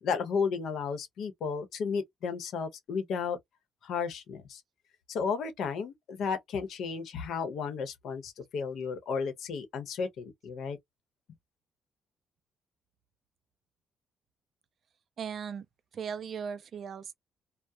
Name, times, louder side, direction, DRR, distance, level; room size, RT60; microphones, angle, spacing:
voice 1, 0.0-3.4 3.8-4.6 5.1-10.8, left 5 dB, 75° left, 0.8 m, -33 dB
voice 2, 15.2-15.7 15.9-17.2, right 7 dB, 55° right, 0.4 m, -37 dB
2.3 x 2.0 x 2.6 m
cardioid pair, 90°, 0 cm